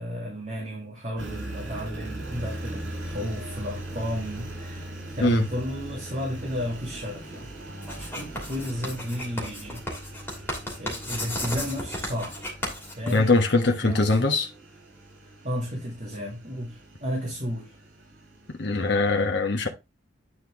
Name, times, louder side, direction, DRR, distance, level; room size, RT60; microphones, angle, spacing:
voice 1, 0.0-7.5 8.0-9.8 10.8-12.4 13.0-13.3 13.8-14.3 15.4-17.7, equal, 35° right, 2.3 m, -33 dB
Engine, 1.2-19.1, right 1 dB, 80° right, 5.2 m, -40 dB
Writing, 7.8-13.6, left 1 dB, 10° left, 2.6 m, -34 dB
voice 2, 13.1-14.5 18.5-19.7, left 3 dB, 60° left, 1.1 m, -22 dB
9.7 x 4.5 x 3.5 m
head